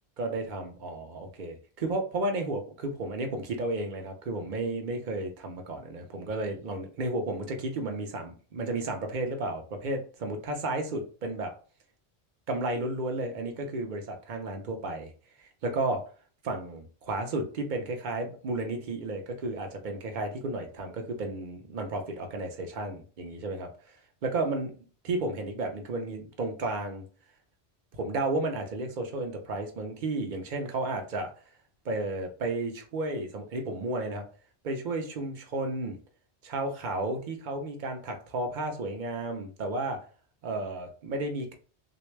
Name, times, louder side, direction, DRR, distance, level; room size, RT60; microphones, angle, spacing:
voice 1, 0.2-11.5 12.5-15.1 15.4-16.0 16.4-23.9 24.2-24.7 25.0-27.0 27.9-31.3 31.8-34.3 34.6-36.0 36.4-40.1 40.4-41.5, right 2 dB, 50° right, 4 dB, 0.8 m, -33 dB
3.4 x 2.6 x 3.2 m, 0.38 s
omnidirectional pair, 1.1 m